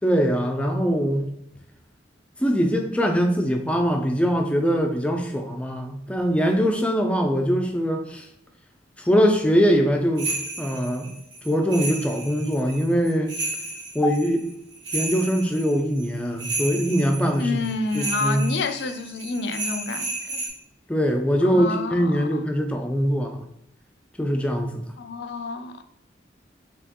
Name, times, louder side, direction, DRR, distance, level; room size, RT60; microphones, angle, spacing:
voice 1, 0.0-1.3 2.4-8.3 9.0-10.3 10.6-11.1 11.4-13.3 13.9-14.5 14.9-17.6 17.9-18.5 20.9-23.4 24.2-24.8, equal, 5° left, 3 dB, 0.4 m, -22 dB
sound 1, 10.2-20.5, right 3 dB, 80° right, 1.5 m, -33 dB
voice 2, 17.4-20.4 21.4-22.4 25.0-25.8, left 3 dB, 70° left, 8 dB, 0.4 m, -29 dB
4.3 x 3.0 x 2.9 m, 0.80 s
head